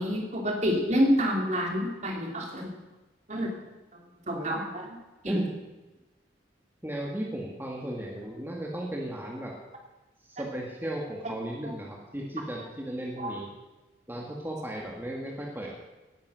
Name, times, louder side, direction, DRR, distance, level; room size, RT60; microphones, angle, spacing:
voice 1, 0.0-2.7 3.3-3.6 4.3-4.9 5.2-5.3 10.4-10.5 13.2-13.3, equal, 40° right, 1 dB, 3.1 m, -28 dB
voice 2, 4.3-4.8 5.3-5.6 6.8-9.5 10.2-13.5 14.1-15.8, right 1 dB, 10° right, -2 dB, 2.0 m, -35 dB
18.5 x 10.5 x 6.4 m, 1.1 s
head